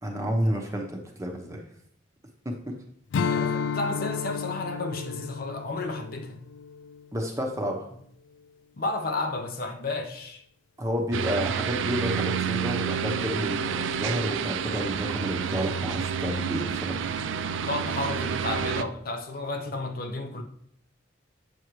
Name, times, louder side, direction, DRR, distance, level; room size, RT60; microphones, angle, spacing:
voice 1, 0.0-1.6 2.4-2.7 7.1-7.9 10.8-17.0, equal, 15° right, 0.9 m, -30 dB
Strum, 3.1-7.8, left 6 dB, 75° left, 0.3 m, -32 dB
voice 2, 3.3-6.4 8.8-10.4 17.7-20.4, left 2 dB, 50° left, 0.7 m, -32 dB
sound 1, 11.1-18.8, right 7 dB, 80° right, 0.4 m, -29 dB
7.7 x 6.3 x 3.1 m
head